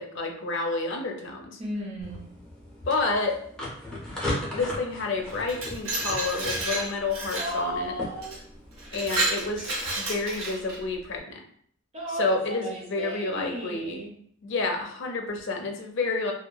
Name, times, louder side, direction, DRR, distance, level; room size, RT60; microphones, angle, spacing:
voice 1, 0.0-1.6 2.9-3.3 4.5-7.9 8.9-11.4 12.1-14.0 14.4-16.3, left 3 dB, 60° left, 3 dB, 0.5 m, -29 dB
voice 2, 1.6-2.3 7.4-8.4 11.9-14.1, right 1 dB, 30° right, -4 dB, 0.5 m, -34 dB
sound 1, 2.0-9.9, left 1 dB, 5° left, 0.7 m, -38 dB
Glass, 5.3-7.6 8.2-8.4 8.8-10.8, right 2 dB, 85° right, 0.8 m, -30 dB
2.8 x 2.2 x 2.2 m, 0.63 s
head